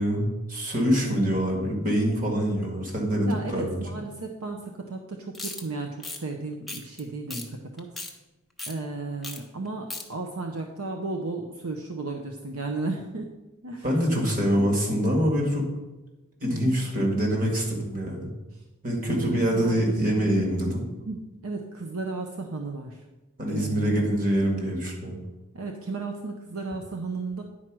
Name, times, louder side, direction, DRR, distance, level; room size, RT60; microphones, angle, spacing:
voice 1, 0.0-3.8 13.8-15.7 16.4-18.3 18.8-20.8 23.4-25.2, equal, 35° right, -1 dB, 2.1 m, -25 dB
voice 2, 3.2-8.0 8.7-13.3 13.6-14.0 16.5-16.8 18.5-18.6 19.0-20.5 21.1-23.1 23.5-24.2 25.5-27.4, right 3 dB, 65° right, 3 dB, 0.7 m, -34 dB
sound 1, 5.3-5.6 6.0-6.2 6.7-7.0 7.3-7.4 7.8-8.1 8.6-8.7 9.2-9.4 9.6-10.0, left 2 dB, ahead, 0.8 m, -36 dB
9.8 x 4.6 x 6.1 m, 1.1 s
head